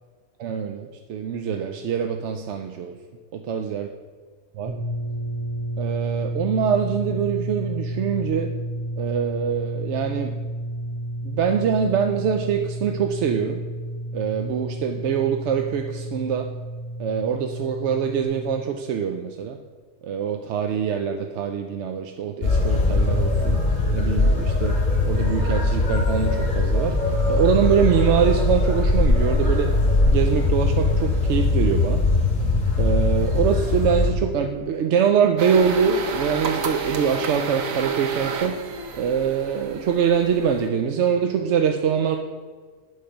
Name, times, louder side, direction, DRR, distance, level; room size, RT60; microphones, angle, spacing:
voice 1, 0.4-2.9 3.5-3.9 4.5-4.7 5.8-8.5 9.0-10.3 11.2-13.6 14.1-16.5 17.0-19.6 20.0-23.6 23.9-24.8 25.1-26.9 27.3-29.7 30.1-32.0 32.8-38.6 38.9-42.2, right 7 dB, 65° right, 4 dB, 0.8 m, -24 dB
sound 1, 4.6-18.3, right 1 dB, 15° right, 2.3 m, -31 dB
sound 2, 22.4-34.1, left 2 dB, 35° left, 2.5 m, -21 dB
sound 3, 35.4-40.7, right 4 dB, 80° right, 1.2 m, -30 dB
11.5 x 4.3 x 5.2 m, 1.5 s
omnidirectional pair, 1.4 m